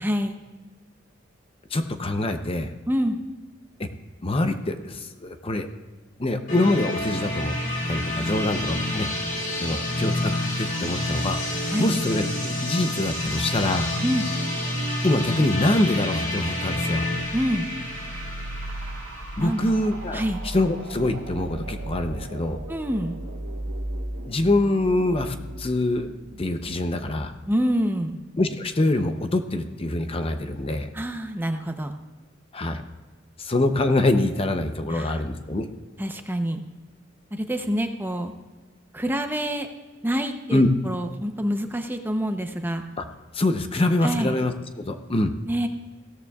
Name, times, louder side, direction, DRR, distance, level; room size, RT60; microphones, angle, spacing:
voice 1, 0.0-0.4 2.9-3.2 11.7-12.0 14.0-14.3 17.3-17.7 19.4-19.7 20.1-20.4 22.7-23.2 27.5-28.2 30.9-31.9 34.9-35.2 36.0-36.6 37.3-38.3 38.9-39.7 40.0-42.8 44.0-44.4 45.5-45.7, equal, 10° right, 6 dB, 0.7 m, -26 dB
voice 2, 1.7-2.7 3.8-3.9 4.2-5.7 6.2-7.5 7.9-9.1 9.6-10.3 10.6-11.4 11.8-13.9 15.0-17.1 19.4-22.6 24.2-26.1 26.4-27.3 28.4-30.9 32.5-32.8 33.4-35.7 40.5-40.7 43.0-43.1 43.3-45.3, left 2 dB, 30° left, 7 dB, 0.7 m, -24 dB
sound 1, 6.5-20.2, left 1 dB, 45° left, 3.7 m, -29 dB
sound 2, 17.2-28.6, right 1 dB, 80° right, 1.2 m, -37 dB
16.5 x 13.5 x 2.4 m, 1.3 s
head